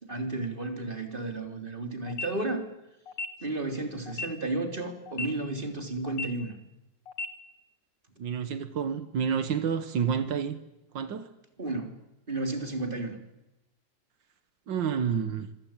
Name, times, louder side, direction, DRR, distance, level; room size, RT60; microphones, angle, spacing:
voice 1, 0.0-2.6 3.4-6.6 11.6-12.0 12.3-13.2, right 2 dB, 25° right, 3.4 m, -33 dB
sound 1, 2.1-2.3 3.1-3.3 4.1-4.3 5.1-5.3 6.1-6.3 7.1-7.3, left 2 dB, 85° left, 2.6 m, -34 dB
voice 2, 8.2-10.6 10.9-11.3 14.7-15.5, right 7 dB, 90° right, 2.1 m, -29 dB
26.0 x 24.5 x 8.9 m
omnidirectional pair, 1.9 m